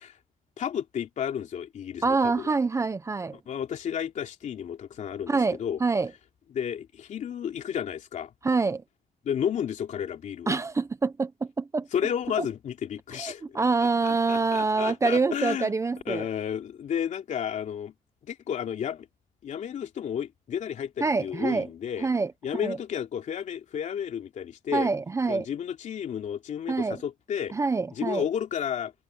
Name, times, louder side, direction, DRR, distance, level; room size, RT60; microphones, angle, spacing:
voice 1, 0.6-2.5 3.5-5.8 6.5-8.3 9.2-10.6 11.9-13.6 14.0-15.7 16.1-17.9 18.2-19.1 19.4-22.1 22.4-24.9 25.3-27.5 27.9-28.9, left 8 dB, 50° left, 3.0 m, -32 dB
voice 2, 2.0-3.4 5.3-6.1 8.4-8.8 10.5-11.9 12.4-12.5 13.2-16.2 21.0-21.7 22.0-22.8 24.7-25.5 26.7-27.0 27.5-28.2, right 4 dB, 20° right, 0.7 m, -26 dB
cardioid pair, 140°, 16 cm